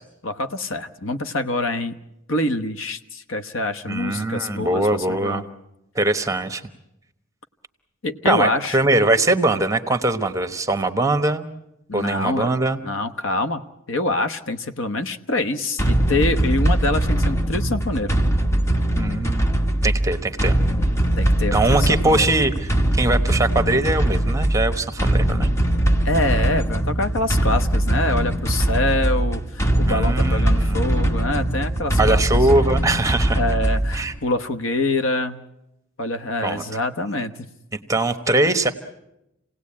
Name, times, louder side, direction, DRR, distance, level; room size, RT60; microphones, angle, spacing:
voice 1, 0.2-2.0 2.3-5.4 8.0-8.8 11.9-12.6 12.8-13.6 13.9-18.2 21.2-22.3 26.0-32.2 33.4-35.4 36.0-37.5, left 2 dB, 70° left, 9 dB, 1.1 m, -25 dB
voice 2, 3.9-5.4 5.9-6.6 8.2-11.5 11.9-12.8 18.9-19.4 19.8-20.5 21.5-25.5 29.9-30.8 32.0-33.4 33.9-34.1 36.4-36.6 37.7-38.7, right 2 dB, 15° right, 9 dB, 1.1 m, -21 dB
sound 1, 15.8-34.2, right 1 dB, 15° left, 1.0 m, -21 dB
28.0 x 18.0 x 8.6 m, 0.89 s
head